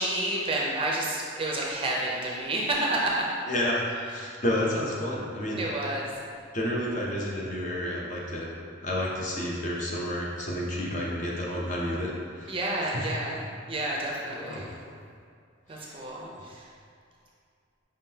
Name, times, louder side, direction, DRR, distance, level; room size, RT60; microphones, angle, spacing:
voice 1, 0.0-3.4 4.2-4.3 5.6-6.1 12.5-13.4 13.7-14.7 15.7-16.7, right 1 dB, 25° right, -3 dB, 0.5 m, -30 dB
voice 2, 3.5-5.6 6.5-8.5 8.8-12.5 12.9-13.2 14.3-14.6 15.7-16.1 16.4-16.5, left 1 dB, 35° left, -3 dB, 0.6 m, -30 dB
5.2 x 3.6 x 2.8 m, 2.4 s
head